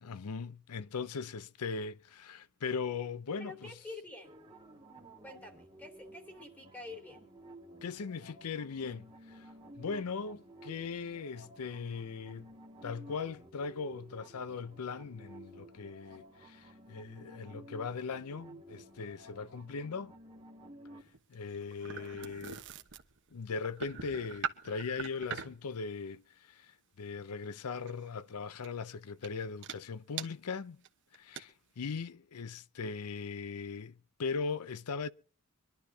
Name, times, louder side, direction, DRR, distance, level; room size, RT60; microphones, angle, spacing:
voice 1, 0.0-3.7 7.8-9.5 9.8-12.5 12.8-20.1 21.3-22.6 23.3-26.7 27.0-30.8 31.1-35.1, left 5 dB, 80° left, 0.6 m, -39 dB
voice 2, 3.4-4.4 5.2-7.3, left 3 dB, 10° left, 3.1 m, -47 dB
sound 1, 4.2-21.0, right 1 dB, 20° right, 2.2 m, -54 dB
sound 2, 21.0-25.7 27.9-28.1 28.6-28.8 29.2-29.3 29.6-29.8 30.2-30.3 30.8-30.9 31.1-31.4, right 7 dB, 55° right, 1.1 m, -42 dB
25.0 x 11.5 x 2.8 m
head